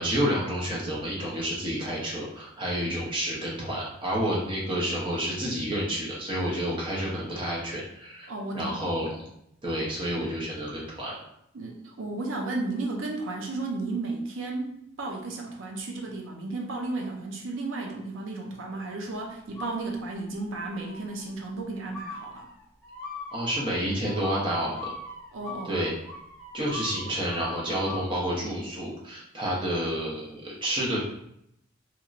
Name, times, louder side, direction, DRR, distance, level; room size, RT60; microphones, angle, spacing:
voice 1, 0.0-8.3 8.5-9.1 9.6-11.1 23.3-24.9 25.6-26.0 26.5-31.0, equal, 25° right, -5 dB, 0.8 m, -29 dB
voice 2, 8.3-8.8 11.5-22.5 25.3-25.8, right 2 dB, 85° right, 1 dB, 0.5 m, -33 dB
sound 1, 19.5-20.3 20.7-21.2 21.9-28.2, left 3 dB, 5° left, 0.5 m, -41 dB
3.0 x 2.9 x 2.5 m, 0.76 s
head